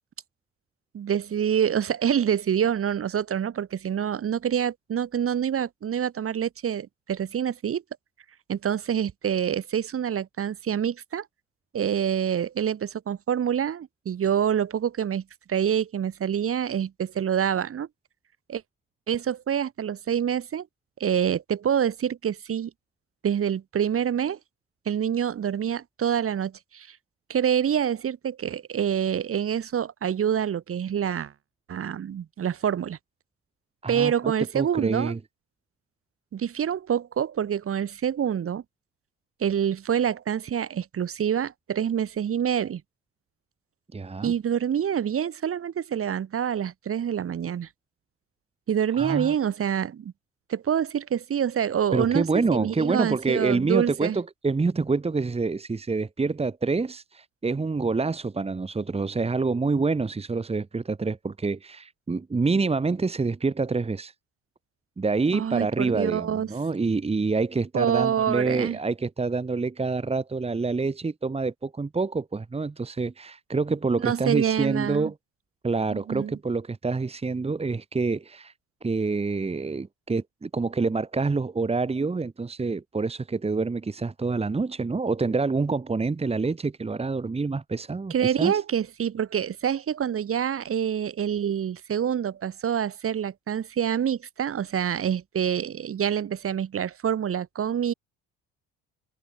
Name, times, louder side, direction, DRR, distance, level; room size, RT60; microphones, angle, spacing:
voice 1, 0.9-7.8 8.5-11.3 11.7-15.2 15.5-17.9 18.5-18.6 19.1-20.7 21.0-22.7 23.2-24.4 24.9-27.0 27.3-31.3 31.7-33.0 33.9-35.2 36.3-38.6 39.4-42.8 44.2-47.7 48.7-50.1 50.5-54.2 65.3-66.5 67.7-68.8 74.0-75.1 75.9-76.4 88.1-97.9, right 9 dB, 45° right, 5.8 m, -26 dB
voice 2, 33.8-35.2 43.9-44.3 48.9-49.3 51.9-64.1 65.0-75.1 75.6-78.5 78.8-88.6, right 4 dB, 20° right, 2.8 m, -27 dB
cardioid pair, 105°, 32 cm